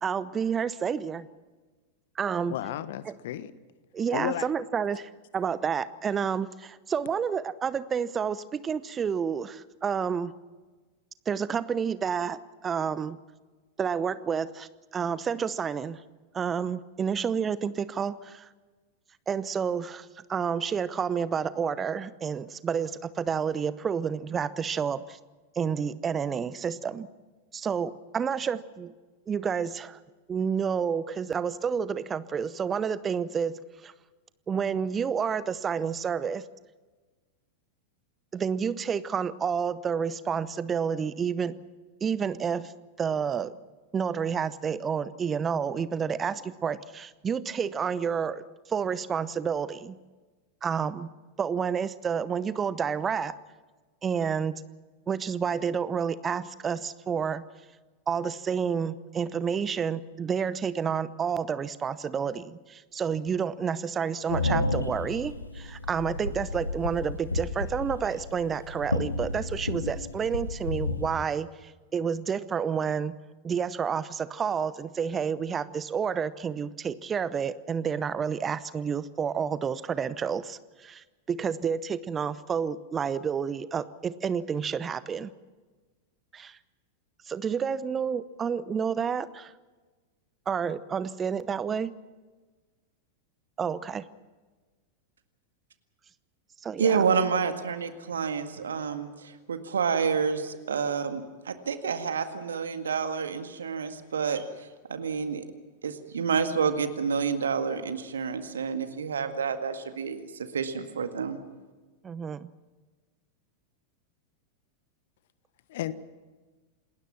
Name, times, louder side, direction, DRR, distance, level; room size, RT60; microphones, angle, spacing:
voice 1, 0.0-1.3 2.2-2.6 3.1-3.2 3.9-10.3 11.3-13.2 13.8-16.0 16.3-18.5 19.3-25.2 25.5-27.1 27.5-28.9 29.3-30.0 30.3-33.9 34.5-36.4 38.3-41.5 42.0-42.7 43.0-43.5 43.9-50.0 50.6-51.1 51.4-53.3 54.0-54.5 55.1-57.4 58.1-73.1 73.4-85.3 86.3-86.6 87.3-89.5 90.5-91.9 93.6-94.0 96.6-97.0 112.0-112.5, right 7 dB, 20° right, 0.8 m, -30 dB
voice 2, 2.5-3.5 4.1-4.5 115.7-115.9, left 12 dB, 55° left, 1.3 m, -32 dB
sound 1, 64.3-71.1, left 2 dB, 80° left, 1.7 m, -31 dB
voice 3, 96.8-104.4 104.9-105.4 105.8-111.4, right 6 dB, 70° right, 1.9 m, -29 dB
28.0 x 20.0 x 6.0 m
figure-of-eight pair, 90°, 0 cm